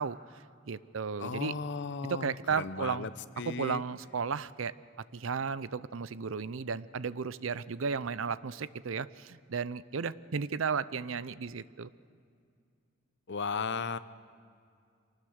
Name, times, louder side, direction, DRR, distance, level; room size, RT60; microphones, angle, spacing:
voice 1, 0.0-1.6 2.0-3.1 3.5-4.7 5.1-11.9, right 5 dB, 80° right, 17 dB, 0.6 m, -34 dB
voice 2, 1.2-3.1 3.4-3.8 13.3-14.0, left 5 dB, 60° left, 13 dB, 0.8 m, -35 dB
24.0 x 19.0 x 6.5 m, 2.3 s
head